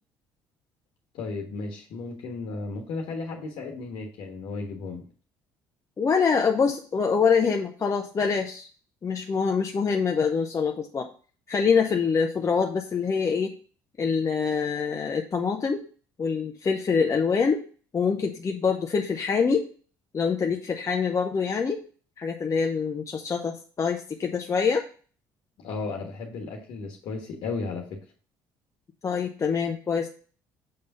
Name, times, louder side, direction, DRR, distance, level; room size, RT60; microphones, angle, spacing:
voice 1, 1.1-5.0 25.6-28.0, left 3 dB, 70° left, 1 dB, 1.3 m, -34 dB
voice 2, 6.0-8.7 9.0-11.1 11.5-13.5 14.0-15.8 16.2-17.6 17.9-19.7 20.1-21.8 22.2-24.8 29.0-30.1, left 5 dB, 35° left, 2 dB, 0.8 m, -25 dB
6.6 x 3.4 x 5.4 m, 0.40 s
supercardioid pair, 70°, 9 cm